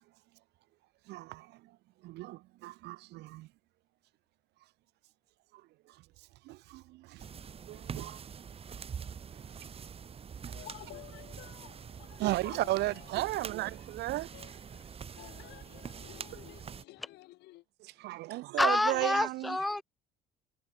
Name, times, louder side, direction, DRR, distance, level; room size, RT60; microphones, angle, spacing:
voice 1, 1.1-1.8 2.0-3.5 5.5-6.0 6.4-7.3 7.6-8.2 9.3-9.4 10.4-10.5 12.2-14.3 17.8-19.7, right 18 dB, 80° right, 1.4 m, -35 dB
sound 1, 7.2-16.8, right 7 dB, 35° right, 1.4 m, -45 dB
voice 2, 10.5-17.6, left 18 dB, 85° left, 4.3 m, -53 dB
voice 3, 18.6-19.8, left 2 dB, ahead, 0.4 m, -28 dB
cardioid pair, 110°, 17 cm